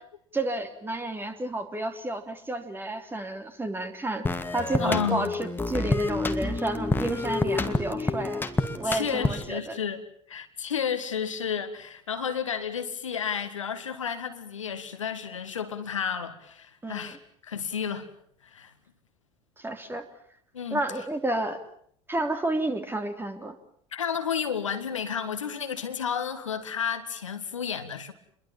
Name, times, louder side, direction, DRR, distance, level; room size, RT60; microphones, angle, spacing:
voice 1, 0.3-4.3 4.5-8.4 8.8-9.8 16.8-17.2 19.6-20.0 20.7-21.6 22.1-23.6, right 2 dB, 15° right, 3.3 m, -31 dB
sound 1, 4.3-9.6, left 2 dB, 10° left, 2.2 m, -28 dB
voice 2, 4.8-5.3 8.8-17.2 17.4-18.1 18.4-18.7 20.5-20.8 23.9-28.1, left 7 dB, 75° left, 1.9 m, -32 dB
28.5 x 22.5 x 7.2 m
figure-of-eight pair, 65°, 16 cm